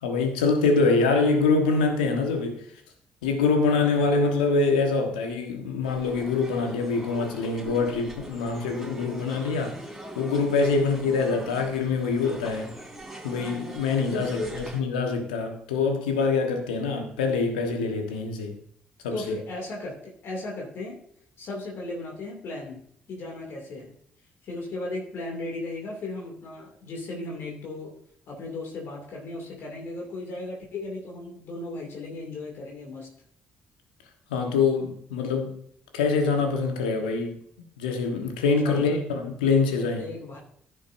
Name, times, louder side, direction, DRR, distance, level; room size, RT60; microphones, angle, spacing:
voice 1, 0.0-2.6 3.2-9.8 10.1-12.7 13.2-18.6 19.0-19.3 34.3-35.6 35.9-37.4 37.8-40.1, left 4 dB, 85° left, 4 dB, 1.3 m, -25 dB
sound 1, 5.8-14.8, right 1 dB, 5° right, 3.8 m, -42 dB
voice 2, 14.1-14.6 19.1-21.0 21.4-22.8 23.1-23.9 24.4-28.0 28.3-33.1 38.4-39.0 40.0-40.4, left 2 dB, 60° left, -1 dB, 2.6 m, -36 dB
15.0 x 6.4 x 2.7 m, 0.67 s
hypercardioid pair, 45°, 5 cm